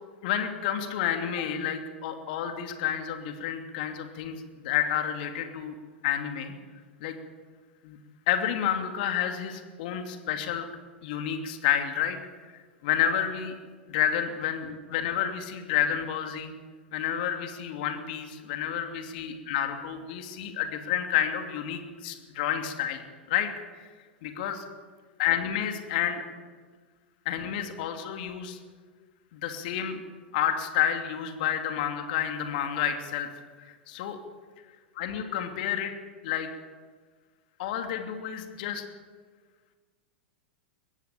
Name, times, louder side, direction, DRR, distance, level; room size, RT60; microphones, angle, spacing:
voice 1, 0.2-5.8 6.0-6.5 7.0-7.1 7.8-8.0 8.3-10.7 11.0-12.2 12.8-13.5 13.9-16.5 16.9-23.0 23.3-23.5 23.8-23.9 24.2-24.6 25.2-26.2 27.2-28.6 29.3-30.0 30.3-33.3 33.7-34.2 35.0-35.9 36.2-36.5 37.6-38.8, left 9 dB, 55° left, 6 dB, 2.7 m, -30 dB
22.0 x 16.0 x 9.1 m, 1.5 s
figure-of-eight pair, 95°, 6 cm